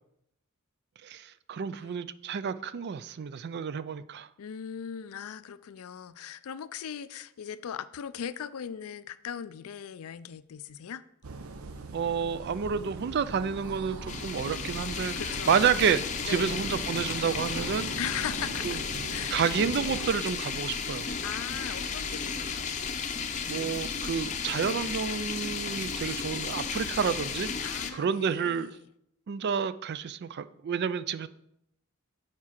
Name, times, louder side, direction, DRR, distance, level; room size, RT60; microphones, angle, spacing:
voice 1, 1.0-4.3 11.9-15.2 15.5-17.9 18.6-18.7 19.3-21.1 23.5-27.5 27.9-28.7 29.3-31.3, right 6 dB, 50° right, 0.3 m, -29 dB
voice 2, 1.7-2.1 4.4-11.0 15.2-15.9 16.2-16.7 18.0-18.8 19.1-19.4 21.2-22.7 27.6-28.9, left 8 dB, 80° left, 0.4 m, -39 dB
sound 1, 11.2-20.1, right 3 dB, 80° right, 0.7 m, -41 dB
sound 2, 14.1-27.9, left 6 dB, 35° left, 0.6 m, -34 dB
7.3 x 4.8 x 5.8 m
head